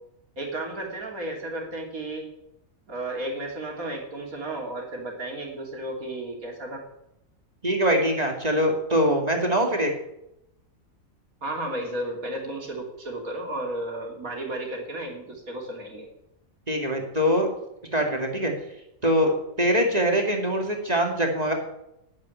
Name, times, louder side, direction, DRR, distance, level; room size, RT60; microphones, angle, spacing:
voice 1, 0.4-2.2 2.9-6.8 11.4-16.1, right 1 dB, 75° right, 0 dB, 3.5 m, -33 dB
voice 2, 7.6-9.9 16.7-17.5 17.9-18.5 19.0-21.5, equal, 25° right, 2 dB, 2.3 m, -23 dB
10.0 x 8.9 x 9.3 m, 0.83 s
omnidirectional pair, 1.5 m